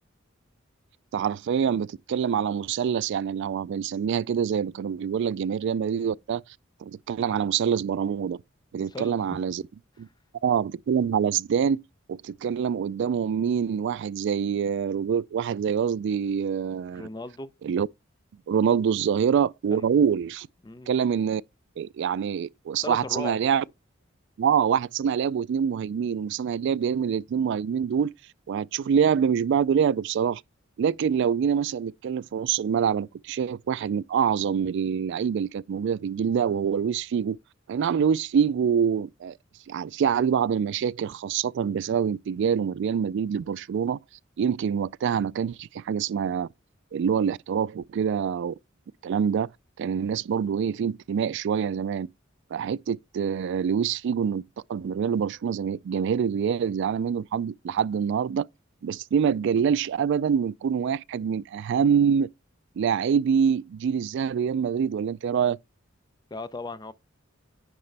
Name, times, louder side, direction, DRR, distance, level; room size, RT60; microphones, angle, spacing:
voice 1, 1.1-6.4 6.8-8.4 8.7-9.6 10.0-10.1 10.4-11.8 12.1-17.1 17.6-17.9 18.5-20.5 20.9-21.4 21.8-23.6 24.4-28.1 28.5-30.4 30.8-37.4 37.7-39.4 39.7-44.0 44.4-46.5 46.9-48.5 49.0-49.5 49.8-52.1 52.5-54.4 54.7-58.5 58.8-62.3 62.8-65.6, right 7 dB, 60° right, 0.3 m, -25 dB
voice 2, 8.8-9.4 16.9-17.5 19.7-19.9 20.6-20.9 22.8-23.4 66.3-66.9, left 2 dB, 20° left, 0.5 m, -37 dB
9.7 x 5.1 x 3.3 m
head